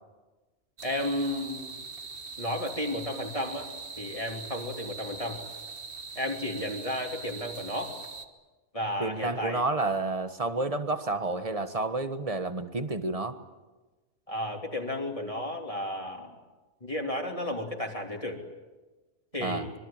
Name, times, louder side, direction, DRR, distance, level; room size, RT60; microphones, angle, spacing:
voice 1, 0.8-1.7 2.4-3.7 4.0-5.4 6.1-8.0 8.7-9.6 14.3-16.3 16.8-18.4 19.3-19.7, left 1 dB, 30° left, 1 dB, 3.2 m, -33 dB
sound 1, 0.8-8.3, right 4 dB, 50° right, 1.6 m, -42 dB
voice 2, 9.0-13.4 19.4-19.7, right 2 dB, 30° right, 9 dB, 1.4 m, -30 dB
25.5 x 22.5 x 8.9 m, 1.2 s
omnidirectional pair, 1.2 m